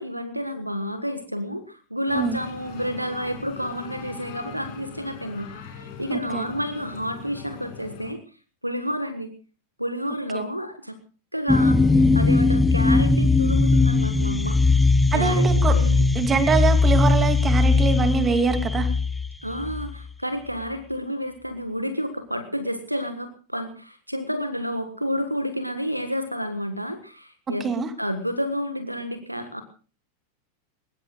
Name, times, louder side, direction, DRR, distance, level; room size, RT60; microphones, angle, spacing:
voice 1, 0.0-8.2 8.6-9.3 9.8-11.0 11.3-14.8 15.1-16.1 19.4-29.6, equal, 90° right, 9 dB, 1.5 m, -30 dB
sound 1, 2.1-8.1, left 6 dB, 50° left, 6.1 m, -41 dB
voice 2, 6.1-6.5 10.3-10.4 15.1-15.7 16.1-18.9 27.6-27.9, right 5 dB, 20° right, 8 dB, 2.7 m, -24 dB
sound 2, 11.5-20.1, left 3 dB, 5° left, 0.9 m, -19 dB
22.5 x 20.5 x 2.4 m, 0.37 s
figure-of-eight pair, 90°, 0 cm